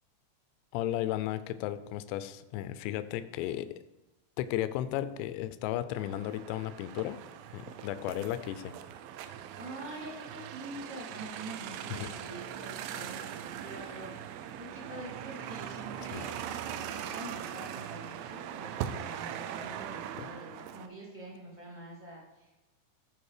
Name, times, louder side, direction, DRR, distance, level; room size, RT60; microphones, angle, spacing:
voice 1, 0.7-3.7 4.4-7.2 7.5-8.7 11.9-12.1 16.1-16.3 20.2-20.3, left 13 dB, 85° left, 12 dB, 2.7 m, -34 dB
sound 1, 6.0-20.9, right 9 dB, 80° right, 2.7 m, -41 dB
voice 2, 9.6-16.3 16.7-22.5, right 1 dB, 10° right, -5 dB, 0.5 m, -45 dB
14.5 x 5.1 x 4.9 m, 1.1 s
omnidirectional pair, 5.2 m